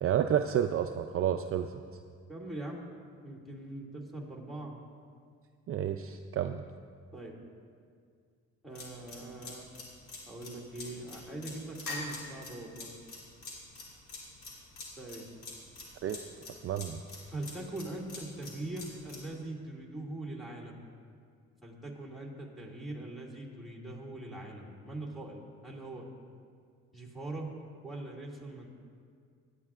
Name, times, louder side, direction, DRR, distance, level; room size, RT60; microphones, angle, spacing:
voice 1, 0.0-1.7 5.7-6.6 16.0-16.2 16.6-17.0, right 9 dB, 50° right, 7 dB, 0.4 m, -30 dB
voice 2, 2.3-2.8 3.2-4.7 7.1-7.3 8.6-9.7 10.3-12.9 15.0-15.3 17.3-20.8 21.6-26.1 26.9-27.5 27.8-28.7, right 2 dB, ahead, -2 dB, 2.2 m, -42 dB
sound 1, 8.8-19.2, left 3 dB, 85° left, 2.8 m, -44 dB
17.0 x 9.8 x 2.4 m, 2.1 s
cardioid pair, 90°, 30 cm